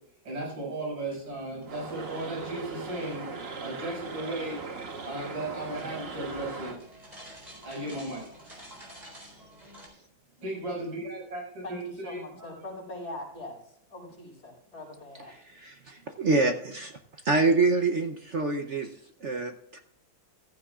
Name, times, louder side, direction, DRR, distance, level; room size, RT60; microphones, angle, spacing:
voice 1, 0.3-3.3 3.6-4.6 5.0-6.8 7.6-8.3 10.4-12.5, right 1 dB, 75° right, -3 dB, 6.9 m, -36 dB
sound 1, 1.1-9.9, equal, 20° right, 4.2 m, -51 dB
sound 2, 1.7-6.8, right 4 dB, 35° right, 1.2 m, -39 dB
voice 2, 11.6-15.3, left 1 dB, 50° left, -2 dB, 5.6 m, -42 dB
voice 3, 15.3-17.0 17.2-19.8, right 3 dB, 55° right, 5 dB, 0.8 m, -27 dB
15.0 x 14.5 x 2.4 m, 0.72 s
omnidirectional pair, 2.2 m